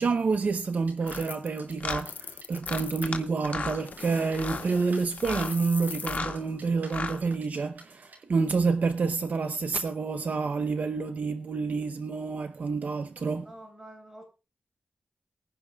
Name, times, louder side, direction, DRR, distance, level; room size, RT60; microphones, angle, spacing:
voice 1, 0.0-13.4, right 4 dB, 60° right, 0.8 m, -28 dB
sound 1, 0.6-8.2, right 3 dB, 85° right, 4.9 m, -51 dB
sound 2, 1.0-1.2 1.8-2.0 2.6-3.2 3.4-3.8 4.3-4.7 5.2-5.5 5.9-6.4 6.8-7.2, left 4 dB, 55° left, 1.9 m, -34 dB
sound 3, 1.1-3.2 3.8-6.2, left 6 dB, 85° left, 0.7 m, -41 dB
voice 2, 13.3-14.2, right 1 dB, 15° right, 7.9 m, -47 dB
24.0 x 10.5 x 2.4 m
wide cardioid pair, 135°, 3 cm